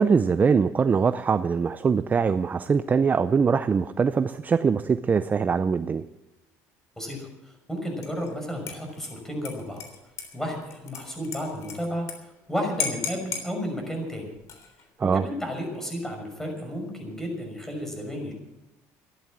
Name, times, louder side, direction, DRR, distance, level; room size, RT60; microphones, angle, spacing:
voice 1, 0.0-6.0 15.0-15.3, right 5 dB, 25° right, 13 dB, 0.5 m, -22 dB
voice 2, 7.0-9.8 10.3-14.3 15.1-18.3, equal, 5° left, 2 dB, 5.8 m, -33 dB
Dishes pots and pans / Liquid, 8.0-8.3 8.7-12.2 12.4-12.5 12.8-13.5 14.3-14.8, left 6 dB, 50° left, 3.5 m, -35 dB
14.5 x 11.0 x 7.5 m, 0.94 s
cardioid pair, 110°, 7 cm